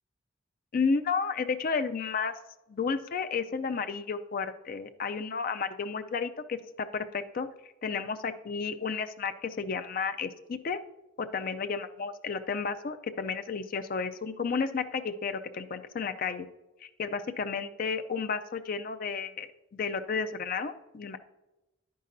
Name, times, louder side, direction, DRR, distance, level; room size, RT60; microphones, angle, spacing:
voice 1, 0.7-2.3 2.7-7.5 7.8-10.8 11.2-16.5 16.8-19.5 19.7-21.2, left 5 dB, 45° left, 9 dB, 0.4 m, -32 dB
10.5 x 9.3 x 2.6 m, 1.0 s
head